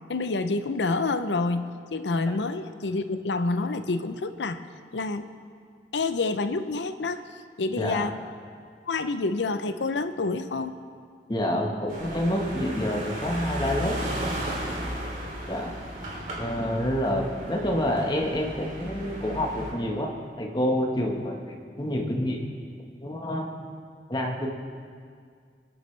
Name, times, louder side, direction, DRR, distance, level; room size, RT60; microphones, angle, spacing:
voice 1, 0.1-4.6 4.9-5.3 5.9-7.2 7.6-8.1 8.9-10.7, left 3 dB, 85° left, 10 dB, 0.7 m, -28 dB
voice 2, 7.8-8.1 11.3-14.3 15.5-15.7 16.4-20.1 20.4-22.4 23.0-23.5 24.1-24.5, equal, 25° left, 1 dB, 1.4 m, -28 dB
sound 1, 11.9-19.7, right 1 dB, 50° right, 2.8 m, -35 dB
25.0 x 9.7 x 3.3 m, 2.1 s
head